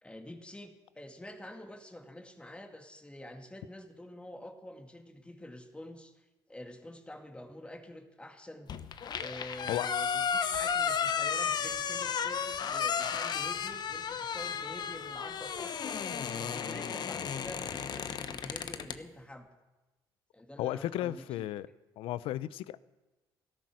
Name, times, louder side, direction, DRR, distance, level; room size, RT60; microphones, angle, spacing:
voice 1, 0.0-8.7 9.2-16.0 16.3-19.5 20.3-21.5, left 1 dB, 10° left, 2.3 m, -47 dB
sound 1, 8.7-19.0, left 7 dB, 50° left, 1.1 m, -33 dB
voice 2, 20.6-21.7 22.0-22.8, left 13 dB, 75° left, 0.6 m, -34 dB
16.5 x 14.0 x 6.4 m
supercardioid pair, 80°, 9 cm